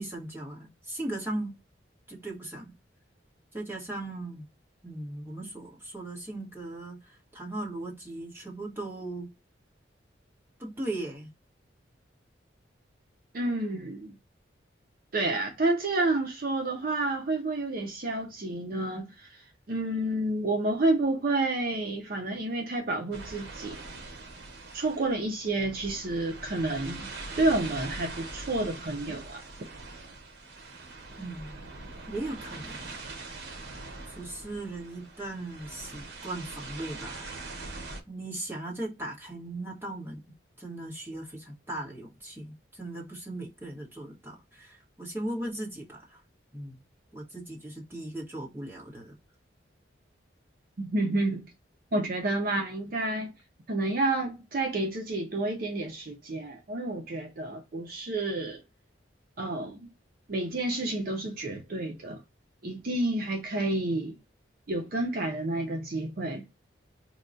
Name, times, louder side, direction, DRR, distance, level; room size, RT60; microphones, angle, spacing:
voice 1, 0.0-1.6 2.1-2.7 3.5-4.4 4.8-9.3 10.6-11.3 31.2-31.5 32.1-33.1 34.1-37.3 38.1-40.2 40.6-46.2 46.5-46.8 47.1-49.2, right 1 dB, 10° right, 1.1 m, -38 dB
voice 2, 13.3-14.2 15.1-19.3 19.7-23.8 24.7-27.1 27.4-29.4 50.8-51.4 51.9-53.3 53.7-58.6 59.4-59.9 60.3-62.2 62.6-64.2 64.7-66.4, right 2 dB, 50° right, 0.5 m, -29 dB
sound 1, 23.1-38.0, right 3 dB, 75° right, 0.9 m, -43 dB
4.5 x 2.2 x 2.5 m
head